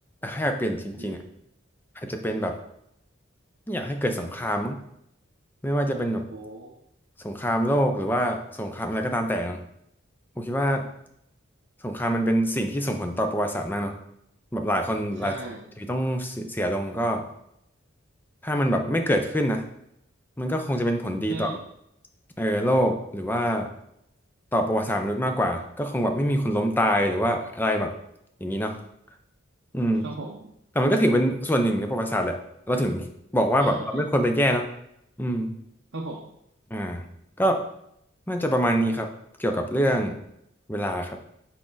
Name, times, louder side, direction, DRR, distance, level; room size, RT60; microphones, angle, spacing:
voice 1, 0.2-1.2 2.0-2.6 3.7-4.8 5.6-6.3 7.2-9.6 10.4-10.9 11.8-14.0 14.5-15.4 15.8-17.2 18.4-19.6 20.4-21.5 22.4-23.7 24.5-27.9 28.4-28.7 29.7-30.1 30.8-32.4 32.7-33.0 33.3-34.7 35.2-35.6 36.7-37.0 37.4-37.6 38.3-39.1 39.4-40.2 40.7-41.2, equal, 10° left, 4 dB, 0.6 m, -25 dB
voice 2, 1.0-1.3 6.3-6.8 15.2-15.7 21.3-21.6 30.0-30.5 33.6-33.9 35.9-36.3, right 2 dB, 65° right, 0 dB, 0.7 m, -37 dB
6.2 x 4.4 x 3.9 m, 0.76 s
head